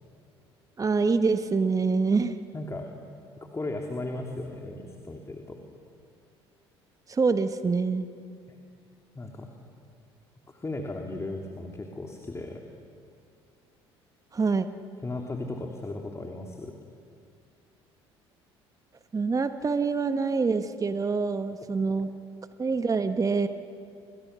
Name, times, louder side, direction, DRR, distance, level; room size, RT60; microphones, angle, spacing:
voice 1, 0.8-2.3 7.1-8.1 14.3-14.7 19.1-22.1 22.6-23.5, right 4 dB, 25° right, 9 dB, 1.3 m, -25 dB
voice 2, 2.5-2.9 3.4-5.6 8.5-8.6 9.1-9.5 10.5-12.6 15.0-16.7, left 2 dB, 20° left, 2 dB, 3.1 m, -36 dB
28.5 x 28.0 x 6.9 m, 2.3 s
figure-of-eight pair, 60°, 14 cm